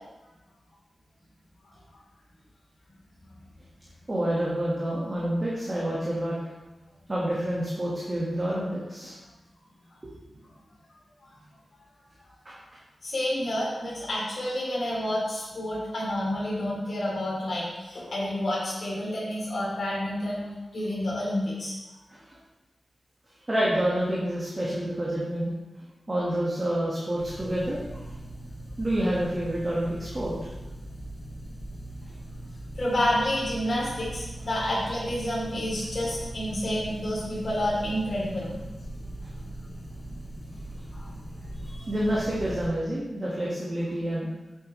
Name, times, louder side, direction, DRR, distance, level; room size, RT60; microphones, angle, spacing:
voice 1, 4.1-6.4 7.1-9.2 10.0-10.1 12.4-12.6 22.1-22.4 23.5-25.5 26.1-28.0 28.8-30.3 39.2-39.3 41.8-44.3, right 1 dB, 20° right, -6 dB, 1.5 m, -28 dB
voice 2, 13.0-20.5 20.7-21.7 32.8-38.5 40.9-41.1 41.7-41.9, left 1 dB, 45° left, -7 dB, 3.0 m, -29 dB
sound 1, 27.2-42.7, right 1 dB, 20° left, 2.1 m, -40 dB
9.2 x 7.7 x 3.1 m, 1.1 s
wide cardioid pair, 175°, 0 cm